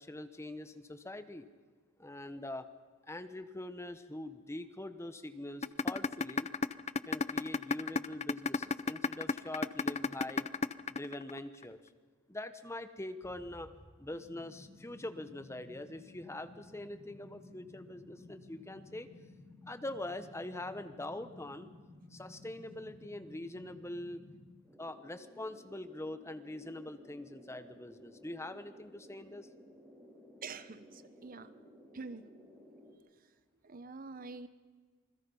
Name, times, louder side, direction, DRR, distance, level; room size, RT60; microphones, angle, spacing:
voice 1, 0.0-1.5 2.0-2.7 3.1-6.5 7.1-10.5 10.9-11.8 12.3-13.7 14.0-19.1 19.7-21.7 22.1-24.2 24.8-29.5, left 1 dB, 15° left, 10 dB, 1.0 m, -43 dB
sound 1, 5.6-11.6, left 4 dB, 30° left, 0.6 m, -31 dB
sound 2, 13.2-32.9, left 1 dB, 15° right, 3.9 m, -56 dB
voice 2, 30.4-31.5 31.9-32.3 33.6-34.5, right 4 dB, 40° right, 13 dB, 0.9 m, -46 dB
27.5 x 21.0 x 5.5 m, 1.4 s
head